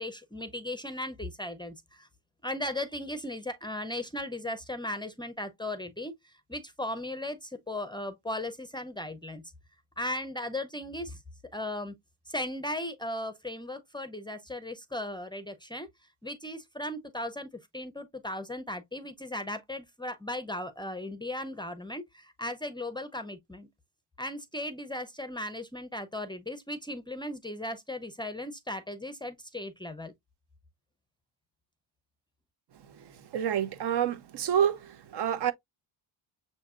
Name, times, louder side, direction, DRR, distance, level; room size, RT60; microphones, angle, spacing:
voice 1, 0.0-2.1 2.4-9.4 10.0-11.2 11.5-12.0 12.3-15.9 16.2-23.7 24.2-30.1, left 1 dB, 10° left, 0.5 m, -37 dB
voice 2, 33.3-34.8 35.1-35.5, right 9 dB, 60° right, 0.7 m, -27 dB
6.9 x 2.7 x 2.4 m
cardioid pair, 115°, 46 cm